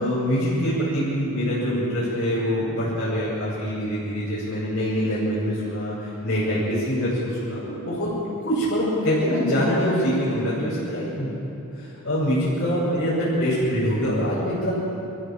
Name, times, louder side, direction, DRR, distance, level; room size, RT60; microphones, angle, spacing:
voice 1, 0.0-8.1 8.4-11.3 11.7-14.7, equal, 50° left, -9 dB, 6.7 m, -24 dB
28.0 x 15.0 x 7.3 m, 2.9 s
head